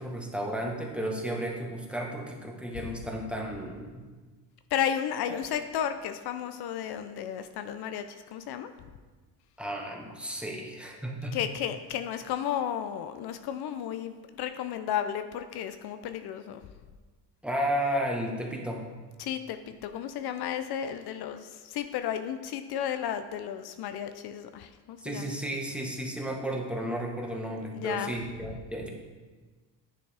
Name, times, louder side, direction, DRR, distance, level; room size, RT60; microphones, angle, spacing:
voice 1, 0.0-4.0 5.3-5.4 9.6-11.3 17.4-18.9 25.0-28.9, right 1 dB, 5° right, -1 dB, 1.3 m, -33 dB
voice 2, 4.7-8.7 11.3-16.6 19.2-25.3 27.7-28.1, left 9 dB, 65° left, 9 dB, 0.6 m, -33 dB
10.0 x 6.8 x 3.4 m, 1.4 s
cardioid pair, 105°, 41 cm